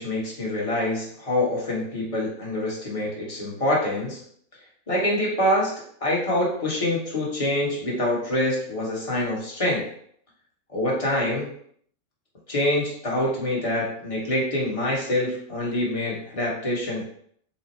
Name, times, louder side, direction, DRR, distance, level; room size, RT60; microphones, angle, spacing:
voice 1, 0.0-4.2 4.9-5.7 6.0-9.8 10.7-11.5 12.5-17.1, left 1 dB, 25° left, -4 dB, 1.0 m, -25 dB
4.2 x 2.1 x 4.1 m, 0.64 s
omnidirectional pair, 1.5 m